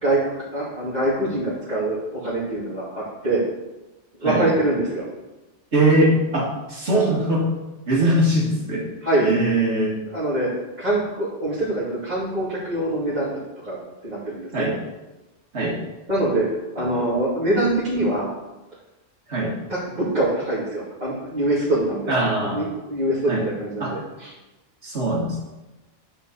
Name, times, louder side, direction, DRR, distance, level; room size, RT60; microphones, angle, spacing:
voice 1, 0.0-3.5 4.2-5.0 9.0-9.3 10.1-10.5 10.8-13.8 14.0-14.7 16.1-16.5 16.7-18.3 19.7-22.1 22.5-24.3, right 1 dB, 35° right, -11 dB, 2.8 m, -24 dB
voice 2, 5.7-7.5 7.9-8.9 9.2-10.0 14.5-14.8 15.5-15.8 16.8-16.9 19.3-19.5 22.1-22.6 23.3-23.4 23.8-23.9 24.8-25.4, right 1 dB, 70° right, -4 dB, 2.4 m, -21 dB
11.0 x 4.2 x 6.7 m, 1.0 s
omnidirectional pair, 1.2 m